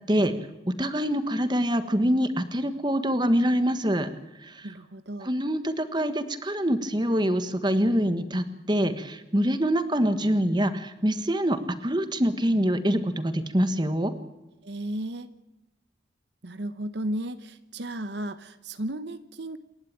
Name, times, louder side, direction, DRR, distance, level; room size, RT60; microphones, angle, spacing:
voice 1, 0.7-4.1 4.4-4.7 5.2-14.1, equal, 25° right, 10 dB, 1.5 m, -25 dB
voice 2, 4.6-5.3 14.6-15.3 16.4-19.6, right 1 dB, 60° right, 11 dB, 1.0 m, -34 dB
28.0 x 11.5 x 8.9 m, 0.99 s
head